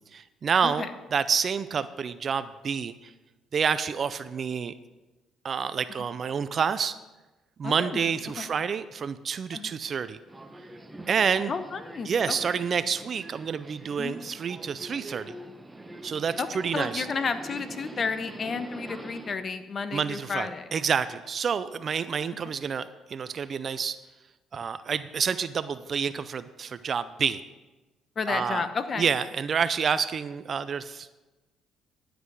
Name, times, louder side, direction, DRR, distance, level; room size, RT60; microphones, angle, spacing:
voice 1, 0.1-0.8 1.1-3.1 3.5-4.7 5.4-7.0 7.6-10.2 11.1-11.5 12.1-15.3 16.0-17.1 19.9-24.0 24.5-27.4 28.3-28.7 29.0-31.1, right 6 dB, 50° right, 14 dB, 0.5 m, -28 dB
voice 2, 7.6-8.0 8.4-8.5 9.5-9.7 11.5-12.5 14.0-14.2 16.4-16.5 16.7-20.7 22.4-22.5 28.2-29.1, left 5 dB, 45° left, 10 dB, 1.0 m, -32 dB
Subway metro underground, 10.3-19.3, right 1 dB, 15° right, 1.0 m, -44 dB
11.5 x 8.0 x 4.8 m, 1.1 s
supercardioid pair, 65°, 0 cm